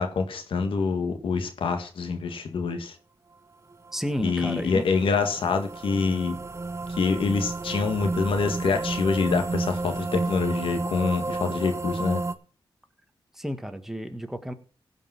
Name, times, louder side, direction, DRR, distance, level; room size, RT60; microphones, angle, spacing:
voice 1, 0.0-3.0 4.2-6.4 7.0-12.2, left 4 dB, 85° left, 1.7 m, -26 dB
voice 2, 3.9-4.8 13.3-14.5, equal, 5° right, 1.5 m, -32 dB
sound 1, 3.9-12.3, right 3 dB, 30° right, 0.9 m, -32 dB
15.5 x 5.3 x 5.9 m
cardioid pair, 70°, 9 cm